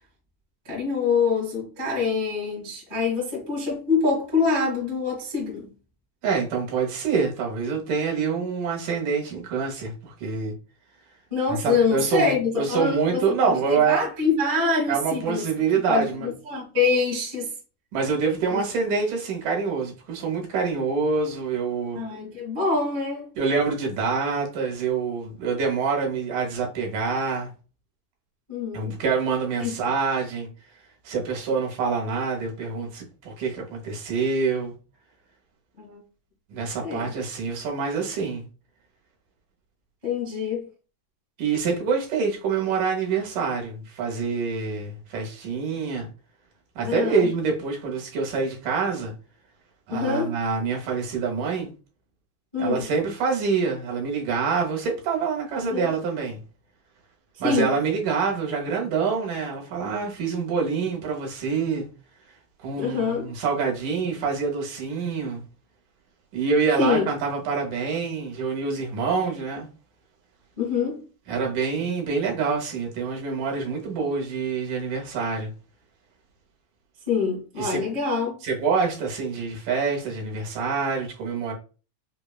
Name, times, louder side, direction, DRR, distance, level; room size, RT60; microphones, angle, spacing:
voice 1, 0.6-5.7 11.3-15.4 15.9-17.5 18.5-18.6 21.9-23.3 28.5-29.0 29.6-29.7 35.8-36.0 36.8-37.1 40.0-40.7 46.8-47.3 49.9-50.3 52.5-52.9 55.6-55.9 57.3-57.7 62.8-63.3 66.8-67.1 70.6-71.0 77.1-78.4, left 4 dB, 35° right, 0.5 m, -25 dB
voice 2, 6.2-10.5 11.5-14.1 14.9-16.3 17.9-22.0 23.4-27.5 28.7-30.5 31.0-34.7 36.5-38.4 41.4-46.1 46.8-49.1 49.9-51.7 52.6-56.4 57.4-61.9 62.6-65.4 66.3-69.7 71.3-75.5 77.6-77.9 78.4-81.5, right 5 dB, 75° right, 2.4 m, -26 dB
5.4 x 2.2 x 2.3 m
omnidirectional pair, 3.8 m